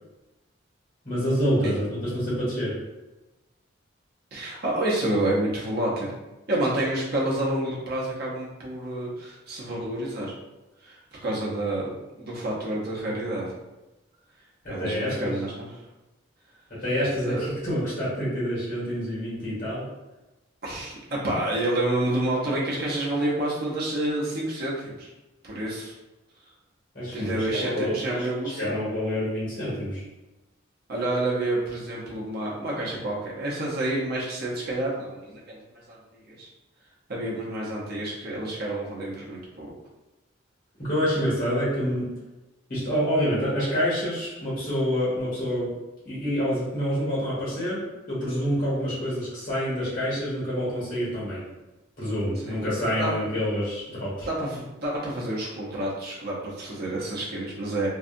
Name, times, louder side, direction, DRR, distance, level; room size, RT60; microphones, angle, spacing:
voice 1, 1.0-2.8 14.6-15.4 16.7-19.9 26.9-30.0 40.8-42.2 42.7-45.8 46.0-51.4 52.0-54.3, equal, 45° left, -9 dB, 1.3 m, -27 dB
voice 2, 4.3-6.1 6.5-10.3 10.8-11.9 12.2-13.5 14.7-15.7 17.2-17.6 20.6-25.1 25.4-25.9 27.1-28.7 30.9-36.5 37.1-39.7 52.5-52.6 53.0-53.1 54.2-57.9, right 1 dB, 50° right, -5 dB, 0.7 m, -29 dB
2.6 x 2.3 x 2.5 m, 1.0 s
head